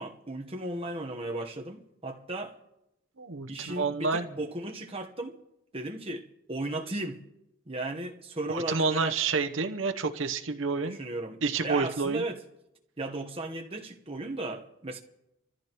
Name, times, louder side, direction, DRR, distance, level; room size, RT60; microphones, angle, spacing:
voice 1, 0.0-2.5 3.5-5.4 5.7-7.2 7.7-9.1 10.8-12.4 13.0-15.0, right 2 dB, 25° right, 1.1 m, -36 dB
voice 2, 3.2-4.3 8.5-11.0 11.4-12.2, right 4 dB, 65° right, 0.8 m, -29 dB
26.5 x 14.0 x 3.0 m
head